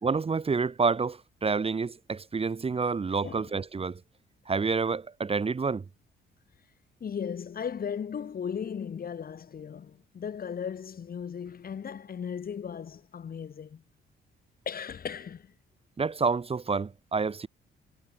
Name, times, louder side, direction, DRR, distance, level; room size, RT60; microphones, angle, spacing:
voice 1, 0.0-4.0 4.5-5.8 16.0-17.5, right 4 dB, 30° right, 1.4 m, -28 dB
voice 2, 3.2-3.6 7.0-13.8 14.7-15.5, left 7 dB, 50° left, 2.4 m, -36 dB
cardioid pair, 90°, 20 cm